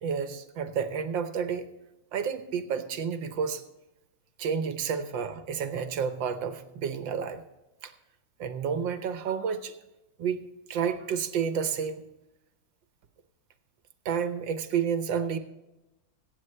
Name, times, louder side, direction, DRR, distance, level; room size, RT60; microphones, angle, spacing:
voice 1, 0.0-1.7 2.1-3.6 4.4-7.4 7.8-7.9 8.4-9.7 10.2-10.4 10.7-12.0 14.0-15.4, right 7 dB, 70° right, 9 dB, 1.6 m, -30 dB
23.5 x 8.6 x 3.3 m, 0.99 s
omnidirectional pair, 2.2 m